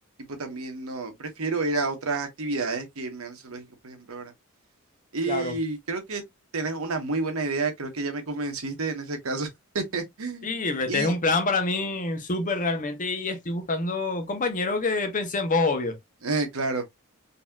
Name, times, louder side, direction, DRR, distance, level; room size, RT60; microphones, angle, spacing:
voice 1, 0.3-4.3 5.1-6.2 6.5-9.5 9.7-10.6 10.9-11.1 16.2-16.8, right 3 dB, 85° right, 1.1 m, -30 dB
voice 2, 10.4-16.0, left 3 dB, 40° left, 0.8 m, -26 dB
4.1 x 2.8 x 2.3 m
head